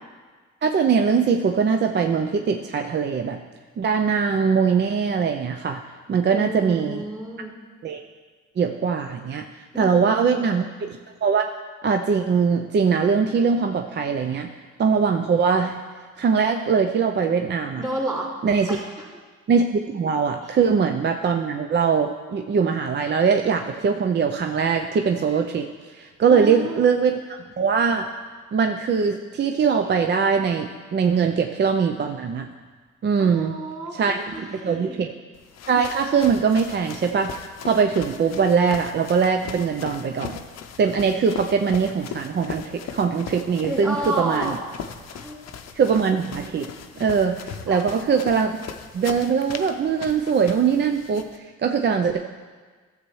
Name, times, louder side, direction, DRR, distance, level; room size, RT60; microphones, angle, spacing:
voice 1, 0.6-3.4 3.8-5.8 6.1-7.0 7.8-8.0 8.6-9.5 9.8-11.5 11.8-14.5 14.8-15.8 16.2-17.8 18.4-18.8 19.5-28.1 28.5-32.5 33.0-33.5 33.9-35.1 35.7-40.4 40.8-44.6 45.7-46.7 47.0-48.6 48.9-52.2, right 6 dB, 35° right, 5 dB, 0.5 m, -22 dB
voice 2, 6.3-7.6 9.7-10.5 17.8-18.3 18.7-18.9 20.4-20.6 26.3-26.8 33.2-35.0 43.7-44.6 45.0-45.4 47.7-47.9, right 1 dB, 10° right, -4 dB, 2.7 m, -31 dB
sound 1, 35.3-51.4, left 7 dB, 60° left, 0.7 m, -39 dB
13.0 x 7.5 x 3.1 m, 1.4 s
cardioid pair, 90°, 30 cm